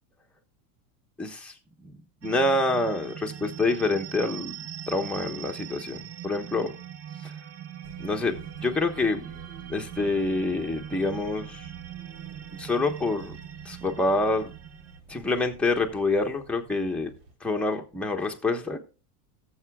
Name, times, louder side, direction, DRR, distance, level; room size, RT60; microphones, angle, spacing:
voice 1, 1.2-1.5 1.8-4.6 4.9-6.7 7.2-7.3 8.0-9.3 9.7-11.7 12.5-13.4 13.6-14.5 15.1-17.1 17.4-18.8, left 2 dB, 5° left, 1.2 m, -27 dB
sound 1, 2.2-15.0, right 10 dB, 35° right, 0.7 m, -41 dB
sound 2, 7.8-17.3, right 5 dB, 85° right, 2.5 m, -50 dB
18.0 x 7.2 x 2.3 m
supercardioid pair, 125°, 43 cm